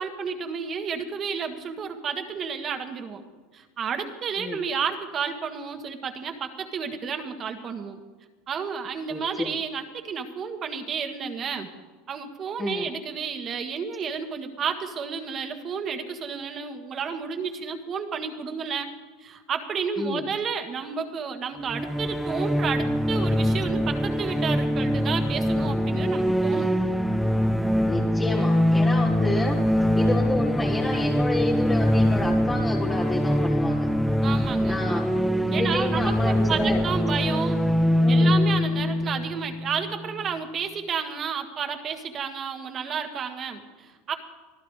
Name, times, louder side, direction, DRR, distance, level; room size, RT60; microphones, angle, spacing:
voice 1, 0.0-3.2 3.5-8.0 8.5-11.7 12.1-18.9 19.2-26.7 34.2-34.8 35.5-37.6 38.1-44.1, right 6 dB, 35° right, 5 dB, 1.8 m, -31 dB
voice 2, 9.1-9.6 12.6-12.9 20.0-20.3 27.9-33.9 34.7-35.1 35.5-36.8 38.0-38.5, left 2 dB, 15° left, -3 dB, 1.6 m, -30 dB
sound 1, 21.7-40.3, equal, ahead, 0.8 m, -23 dB
24.5 x 15.0 x 3.3 m, 1.4 s
supercardioid pair, 125°, 0 cm